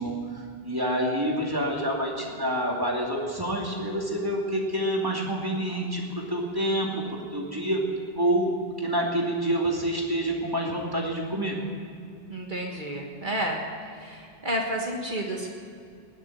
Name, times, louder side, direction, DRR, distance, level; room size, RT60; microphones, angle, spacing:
voice 1, 0.0-6.0 6.3-6.9 7.3-7.8 8.1-8.5 8.8-11.6, right 1 dB, 20° right, -2 dB, 2.5 m, -27 dB
voice 2, 12.3-13.6 13.9-15.5, right 1 dB, 50° right, 0 dB, 1.8 m, -31 dB
20.0 x 7.4 x 9.3 m, 2.4 s
omnidirectional pair, 1.0 m